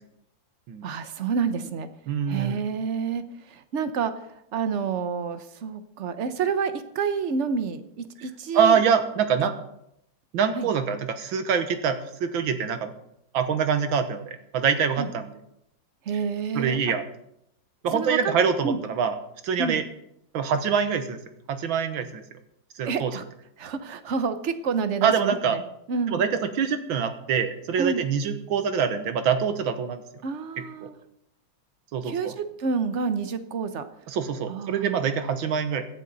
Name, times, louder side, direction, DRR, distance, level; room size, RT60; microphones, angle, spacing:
voice 1, 0.8-1.9 2.3-3.2 3.5-4.1 4.5-8.8 10.5-10.7 15.0-15.1 16.1-16.8 17.9-18.3 18.6-18.8 19.6-19.8 22.8-23.2 23.6-25.6 25.9-26.2 27.8-28.0 30.2-31.0 32.0-33.9 34.5-35.0, right 5 dB, 50° right, 10 dB, 1.0 m, -28 dB
voice 2, 2.1-2.6 8.5-9.6 10.3-12.9 13.3-15.4 16.6-17.0 17.8-19.2 19.4-19.8 20.3-21.2 21.5-22.2 22.8-23.2 25.0-25.6 26.1-30.0 31.9-32.3 34.1-35.9, right 7 dB, 80° right, 9 dB, 1.9 m, -25 dB
17.0 x 11.5 x 4.1 m, 0.78 s
omnidirectional pair, 2.1 m